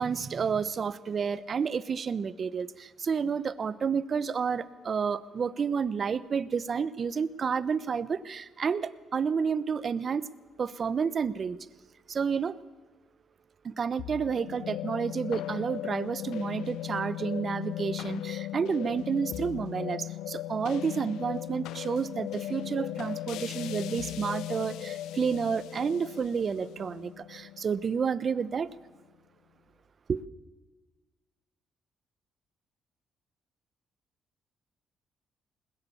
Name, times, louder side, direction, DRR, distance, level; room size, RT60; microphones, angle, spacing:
voice 1, 0.0-10.3 10.6-11.6 12.1-12.6 13.6-28.7 30.1-30.2, right 6 dB, 45° right, 17 dB, 1.0 m, -30 dB
sound 1, 14.0-28.4, left 14 dB, 90° left, 0.6 m, -38 dB
21.0 x 21.0 x 7.1 m, 1.3 s
cardioid pair, 90°, 0 cm